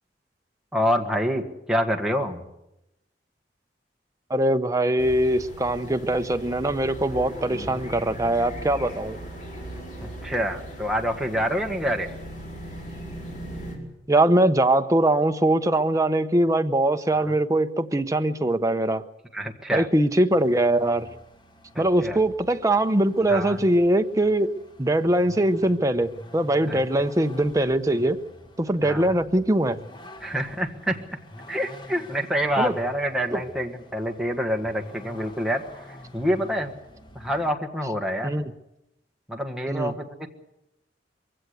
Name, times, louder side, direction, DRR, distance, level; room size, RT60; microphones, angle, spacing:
voice 1, 0.7-2.4 7.5-7.8 10.0-12.1 17.1-17.2 19.3-19.9 21.7-22.2 23.3-23.6 26.7-26.8 28.8-29.1 30.2-31.0 31.5-35.6 36.1-36.7 37.1-38.3 39.3-40.3, equal, 5° right, 2 dB, 1.6 m, -27 dB
voice 2, 4.3-9.2 14.1-19.0 19.7-21.1 21.8-24.5 24.8-28.2 28.6-29.8 32.6-32.7 33.3-33.4 38.2-38.5 39.7-39.9, right 1 dB, 20° right, 7 dB, 0.8 m, -22 dB
sound 1, 5.0-13.8, right 1 dB, 45° left, 5.1 m, -38 dB
Vehicle, 20.3-37.5, left 1 dB, 25° left, 1.3 m, -47 dB
22.5 x 16.5 x 8.1 m, 0.89 s
head